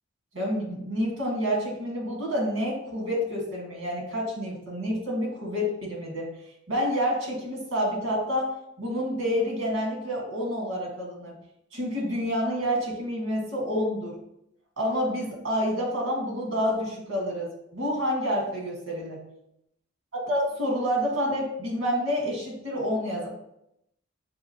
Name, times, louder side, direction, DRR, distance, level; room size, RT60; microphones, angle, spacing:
voice 1, 0.3-6.3 6.7-11.3 11.7-14.1 14.8-19.2 20.1-23.3, equal, 85° right, -1 dB, 1.7 m, -28 dB
6.2 x 2.9 x 2.8 m, 0.79 s
head